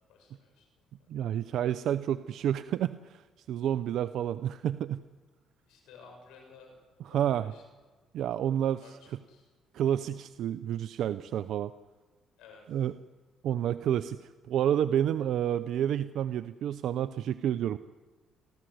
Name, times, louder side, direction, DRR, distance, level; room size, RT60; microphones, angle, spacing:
voice 1, 0.1-0.8 5.7-6.8 7.1-7.6 8.8-9.5 12.4-12.9, left 4 dB, 80° left, 3 dB, 7.0 m, -55 dB
voice 2, 1.1-5.0 7.1-7.5 8.1-8.8 9.7-11.7 12.7-12.9 13.4-14.2 14.5-17.8, right 10 dB, 70° right, 14 dB, 0.6 m, -29 dB
29.0 x 13.0 x 7.9 m, 1.3 s
supercardioid pair, 65°, 0 cm